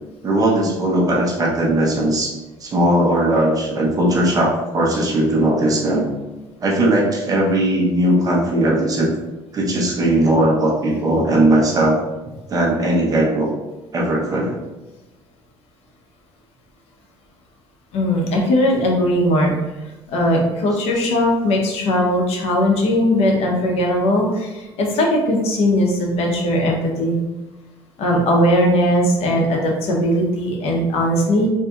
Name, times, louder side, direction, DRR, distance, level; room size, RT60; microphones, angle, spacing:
voice 1, 0.2-2.3 2.6-6.1 6.6-9.1 9.5-12.0 12.5-13.5 13.9-14.6, right 1 dB, 35° right, -2 dB, 0.9 m, -18 dB
voice 2, 17.9-19.5 20.1-27.1 28.0-31.5, equal, 70° left, 0 dB, 0.8 m, -18 dB
4.0 x 2.7 x 2.3 m, 1.1 s
cardioid pair, 115°, 11 cm